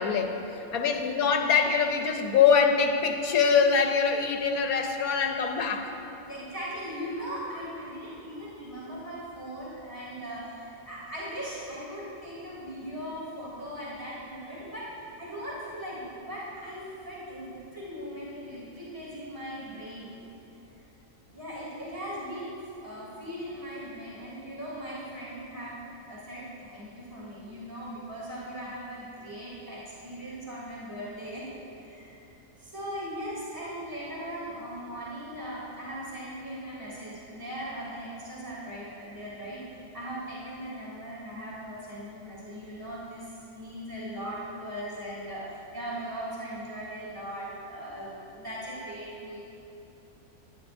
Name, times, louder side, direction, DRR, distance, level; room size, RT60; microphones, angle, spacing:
voice 1, 0.0-5.9, left 6 dB, 85° left, 4 dB, 1.3 m, -24 dB
voice 2, 0.8-1.2 6.2-20.1 21.3-25.8 26.1-32.2 32.6-49.4, equal, 15° right, -8 dB, 3.0 m, -39 dB
18.0 x 11.0 x 2.6 m, 3.0 s
omnidirectional pair, 1.5 m